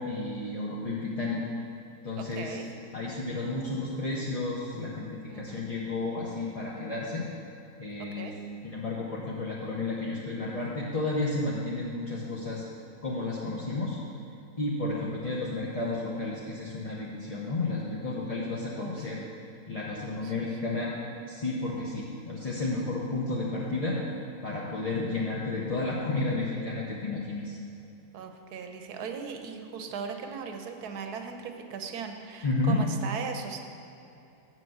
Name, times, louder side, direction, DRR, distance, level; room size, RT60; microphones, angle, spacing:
voice 1, 0.0-1.4 2.0-2.6 2.9-7.3 7.8-8.3 8.6-12.6 13.0-14.0 14.6-19.2 19.7-20.9 21.3-24.0 24.4-27.6 32.4-32.8, left 2 dB, 30° left, -5 dB, 0.7 m, -32 dB
voice 2, 2.2-2.7 5.3-5.7 8.2-8.4 14.9-15.1 18.8-19.1 20.1-20.5 28.1-33.6, right 5 dB, 75° right, 5 dB, 1.3 m, -39 dB
7.7 x 6.0 x 7.7 m, 2.7 s
omnidirectional pair, 1.8 m